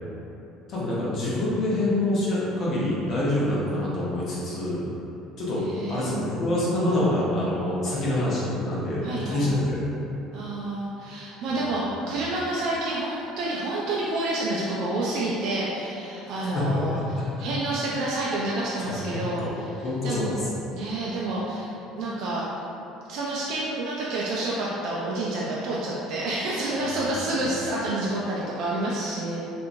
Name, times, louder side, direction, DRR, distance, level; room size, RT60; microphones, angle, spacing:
voice 1, 0.7-4.8 5.4-5.6 5.9-9.8 11.5-11.6 16.4-17.2 18.8-19.5 19.8-20.4 27.3-27.4, left 1 dB, 45° left, -7 dB, 0.8 m, -26 dB
voice 2, 5.6-6.3 9.0-9.5 10.3-17.0 17.4-20.3 20.7-22.5 23.1-29.4, right 2 dB, 65° right, -6 dB, 0.3 m, -29 dB
2.9 x 2.5 x 2.5 m, 2.9 s
cardioid pair, 110°, 0 cm